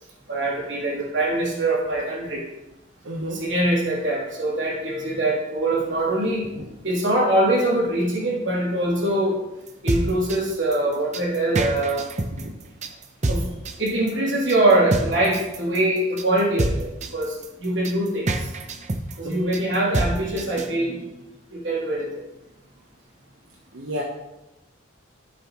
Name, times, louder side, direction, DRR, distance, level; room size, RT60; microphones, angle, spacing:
voice 1, 0.3-2.4 3.3-6.4 6.8-9.4 9.8-12.1 13.3-13.5 13.8-16.9 17.1-17.3 17.6-18.3 19.2-21.0 21.5-22.1, right 1 dB, 65° right, -5 dB, 3.2 m, -23 dB
voice 2, 3.0-3.4 6.6-6.7 12.4-12.5 19.2-19.5 23.7-24.0, equal, 80° right, -1 dB, 1.1 m, -31 dB
sound 1, 9.7-20.7, right 2 dB, 35° right, 0.6 m, -27 dB
12.0 x 7.3 x 3.1 m, 0.99 s
head